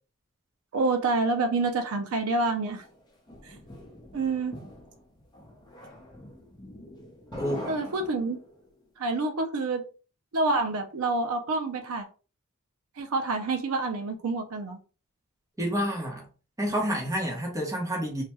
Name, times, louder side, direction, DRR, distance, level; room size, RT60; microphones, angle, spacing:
voice 1, 0.7-2.8 3.4-3.6 4.1-4.6 7.7-8.4 9.0-9.8 10.3-12.1 13.0-14.8, right 3 dB, 80° right, 0.5 m, -27 dB
sound 1, 2.8-8.7, left 1 dB, 20° left, 0.7 m, -44 dB
voice 2, 7.3-7.7 15.6-16.3 16.6-18.2, equal, 15° right, 0.8 m, -29 dB
3.3 x 2.2 x 2.9 m
head